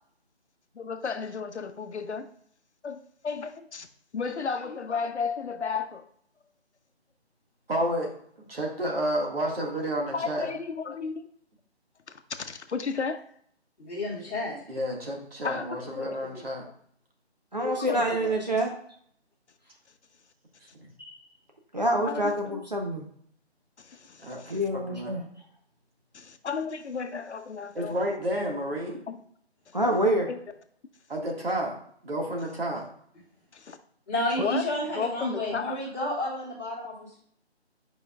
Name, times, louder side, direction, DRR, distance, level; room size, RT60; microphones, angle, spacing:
voice 1, 0.8-2.3 2.8-3.9 4.1-6.0 10.1-11.2 12.4-13.2 15.4-16.4 17.6-18.3 22.1-22.6 23.9-24.6 26.1-28.0 29.1-29.2 30.3-30.4 33.5-33.8 34.4-34.7 34.9-35.8, left 5 dB, 85° left, 8 dB, 0.8 m, -33 dB
voice 2, 7.7-8.1 8.5-10.5 14.7-16.6 24.2-25.2 27.7-29.0 31.1-31.7 32.0-32.9, equal, 60° right, 0 dB, 1.7 m, -30 dB
voice 3, 13.8-14.6 34.1-37.2, left 1 dB, 10° left, -13 dB, 1.6 m, -31 dB
voice 4, 17.5-18.7 21.0-21.2 21.7-23.0 24.5-25.2 29.7-30.3 34.4-34.5, right 1 dB, 40° right, 1 dB, 0.6 m, -26 dB
8.6 x 5.1 x 2.3 m, 0.64 s
figure-of-eight pair, 180°, 33 cm